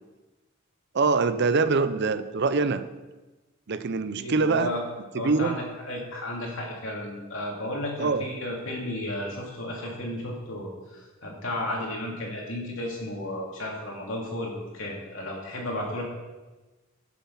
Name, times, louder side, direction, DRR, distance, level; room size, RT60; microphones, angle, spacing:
voice 1, 0.9-2.9 3.7-4.7 5.1-5.6 8.0-8.3, right 4 dB, 55° right, 12 dB, 0.6 m, -24 dB
voice 2, 4.2-4.8 5.2-16.0, left 1 dB, 75° left, -1 dB, 2.8 m, -33 dB
11.5 x 7.2 x 5.7 m, 1.2 s
head